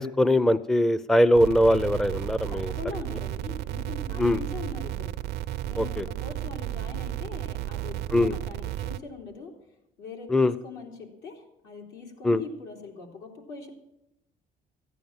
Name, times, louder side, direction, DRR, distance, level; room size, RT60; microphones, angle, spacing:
voice 1, 0.0-2.7 4.2-4.4 5.8-6.0 8.1-8.3 10.3-10.5 12.2-12.4, left 1 dB, 5° left, 15 dB, 0.4 m, -21 dB
sound 1, 1.3-9.0, right 13 dB, 75° right, 0.5 m, -33 dB
voice 2, 2.5-5.1 5.6-9.5 10.0-13.7, left 4 dB, 90° left, 0 dB, 3.2 m, -41 dB
14.0 x 9.2 x 7.2 m, 0.88 s
cardioid pair, 110°, 17 cm